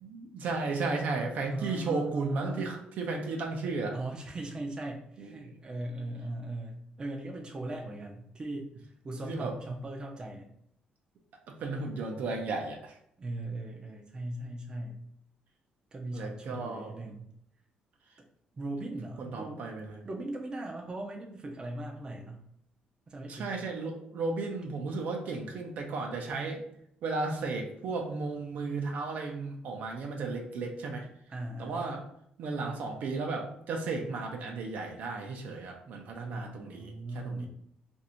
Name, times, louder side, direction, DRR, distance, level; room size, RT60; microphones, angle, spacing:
voice 1, 0.0-4.0 5.2-5.5 9.2-9.5 11.5-12.9 16.1-16.9 19.2-19.9 23.3-26.6 27.0-31.1 31.6-32.0 32.4-37.5, right 3 dB, 65° right, 2 dB, 0.7 m, -34 dB
voice 2, 1.5-2.7 3.9-8.7 9.0-10.5 13.2-15.0 15.9-17.3 18.5-19.6 20.0-22.4 23.1-23.5 31.3-31.8 36.3-37.5, right 1 dB, 30° right, 0 dB, 0.6 m, -39 dB
2.7 x 2.5 x 4.2 m, 0.71 s
cardioid pair, 120°, 3 cm